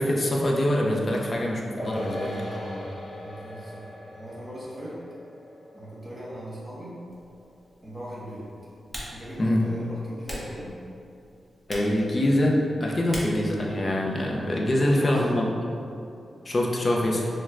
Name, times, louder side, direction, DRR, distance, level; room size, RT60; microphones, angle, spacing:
voice 1, 0.0-2.3 9.4-9.6 11.7-15.4 16.4-17.3, left 1 dB, 40° left, -2 dB, 0.6 m, -24 dB
sound 1, 1.8-8.4 8.7-8.8, left 1 dB, 70° left, 1.1 m, -40 dB
voice 2, 2.3-3.8 4.1-5.0 5.7-6.9 7.8-8.5 9.1-10.7 14.7-15.4, equal, 25° right, -7 dB, 1.3 m, -39 dB
Typing, 7.1-14.6, equal, 15° left, 0.9 m, -43 dB
5.9 x 2.2 x 2.5 m, 2.5 s
cardioid pair, 75°, 0 cm